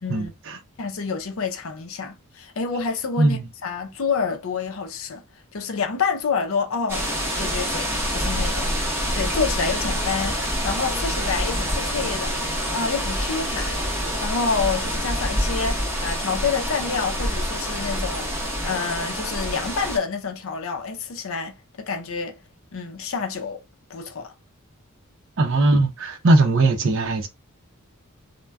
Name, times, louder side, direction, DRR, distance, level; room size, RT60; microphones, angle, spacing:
voice 1, 0.0-5.2 5.5-8.8 9.1-12.4 12.7-13.8 14.2-22.4 22.7-23.6 23.9-24.3, left 5 dB, 65° left, 0.5 m, -28 dB
sound 1, 6.9-20.0, equal, 10° right, 0.7 m, -26 dB
voice 2, 25.4-27.3, right 2 dB, 55° right, 0.6 m, -19 dB
2.2 x 2.1 x 3.4 m
head